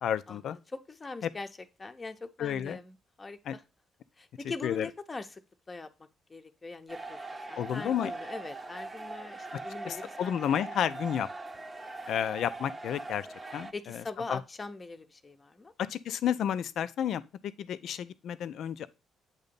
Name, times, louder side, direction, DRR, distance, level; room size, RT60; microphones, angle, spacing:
voice 1, 0.0-0.6 1.2-1.3 2.4-2.8 3.4-3.6 4.6-4.9 7.6-8.1 9.5-9.6 9.9-11.3 12.1-13.3 13.5-14.0 14.3-14.4 15.8-18.9, left 9 dB, 65° left, 0.4 m, -31 dB
voice 2, 0.9-1.5 1.8-2.9 3.2-3.6 4.2-5.4 5.7-5.9 6.3-7.2 7.5-10.3 10.6-10.7 13.7-15.7, left 3 dB, 30° left, 0.7 m, -41 dB
sound 1, 6.9-13.7, right 2 dB, 25° right, 0.7 m, -41 dB
8.0 x 2.8 x 5.1 m
hypercardioid pair, 55°, 0 cm